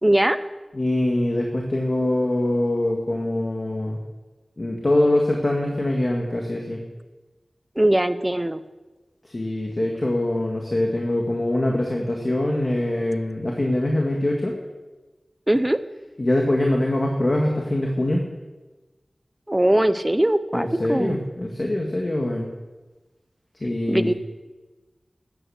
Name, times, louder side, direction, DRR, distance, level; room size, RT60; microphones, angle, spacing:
voice 1, 0.0-0.4 7.8-8.6 15.5-15.8 19.5-21.2 23.9-24.1, right 1 dB, 20° right, 12 dB, 0.8 m, -20 dB
voice 2, 0.7-4.0 4.6-6.8 9.2-14.6 16.2-18.2 20.5-22.5 23.6-24.1, left 1 dB, 40° left, 0 dB, 1.9 m, -23 dB
12.5 x 9.4 x 8.0 m, 1.2 s
wide cardioid pair, 70°, 0 cm